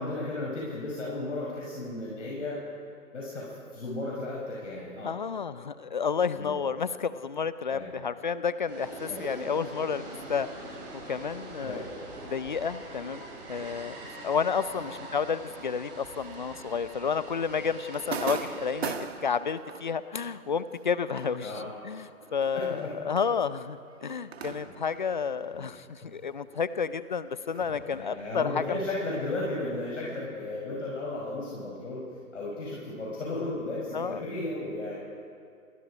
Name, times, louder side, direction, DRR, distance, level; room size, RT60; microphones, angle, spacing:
voice 1, 0.0-2.6 3.1-5.1 6.4-6.5 7.7-7.9 9.1-9.2 11.6-11.8 14.8-14.9 21.4-21.6 22.5-22.9 24.6-24.7 25.5-25.6 27.9-32.0 32.3-35.0, left 2 dB, 55° left, -4 dB, 5.9 m, -34 dB
voice 2, 5.0-10.8 11.1-11.8 12.2-13.2 13.5-14.0 14.2-19.0 19.2-21.5 21.8-28.6 33.9-34.2, left 6 dB, 30° left, 15 dB, 0.7 m, -31 dB
sound 1, 8.7-18.9, right 2 dB, 30° right, 6.1 m, -43 dB
sound 2, 17.3-26.3 26.5-30.1, right 6 dB, 45° right, 1.8 m, -42 dB
29.0 x 23.5 x 5.1 m, 2.3 s
figure-of-eight pair, 140°, 44 cm